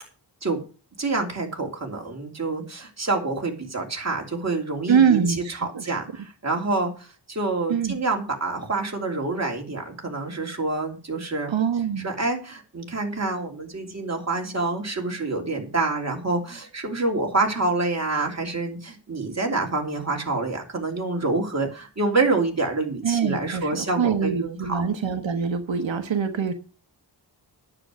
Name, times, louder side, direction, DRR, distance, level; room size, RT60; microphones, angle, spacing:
voice 1, 1.0-5.2 5.5-11.5 12.0-24.8, right 3 dB, 35° right, 1 dB, 3.0 m, -27 dB
voice 2, 4.9-5.8 7.7-7.9 11.5-12.1 23.0-26.5, right 7 dB, 85° right, 6 dB, 1.3 m, -24 dB
9.8 x 7.9 x 6.3 m, 0.35 s
wide cardioid pair, 110°, 45 cm